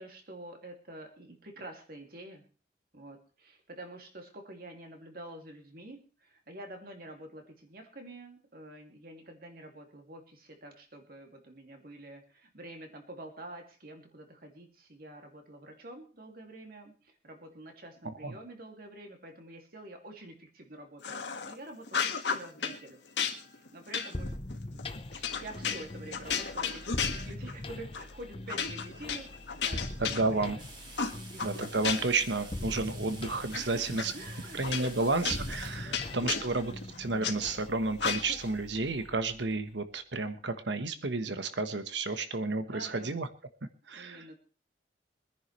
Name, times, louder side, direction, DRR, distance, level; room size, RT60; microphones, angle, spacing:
voice 1, 0.0-2.4 2.9-23.0 23.5-24.3 24.7-30.6 31.0-32.1 33.5-34.9 35.7-36.5 42.1-43.2 43.9-44.4, right 1 dB, 55° right, 3 dB, 2.7 m, -48 dB
sound 1, 21.0-21.5 21.9-22.8 23.2-27.6 27.9-28.1 28.5-30.6 31.0-32.3 32.6-33.6 34.0-34.1 34.6-37.4 38.0-38.5, left 6 dB, 75° left, 1.7 m, -34 dB
sound 2, 24.1-39.8, left 1 dB, 30° left, 0.9 m, -42 dB
voice 2, 30.0-30.6 31.4-34.1 34.5-36.7 37.0-43.3 43.9-44.2, right 3 dB, 80° right, 9 dB, 1.3 m, -31 dB
sound 3, 30.6-36.0, right 2 dB, 25° right, 2.7 m, -50 dB
24.0 x 10.5 x 3.3 m, 0.35 s
head